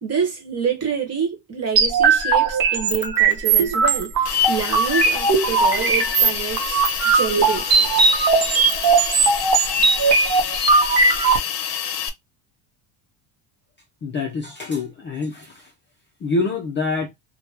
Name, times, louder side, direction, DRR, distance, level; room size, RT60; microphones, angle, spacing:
voice 1, 0.0-8.1, right 7 dB, 30° right, 1.1 m, -27 dB
sound 1, 1.8-11.4, right 4 dB, 45° right, 0.8 m, -18 dB
Hiss, 4.3-12.1, left 9 dB, 60° left, 0.7 m, -28 dB
voice 2, 14.0-15.7 16.2-17.1, left 3 dB, 25° left, 0.4 m, -26 dB
2.8 x 2.2 x 3.2 m
cardioid pair, 145°, 49 cm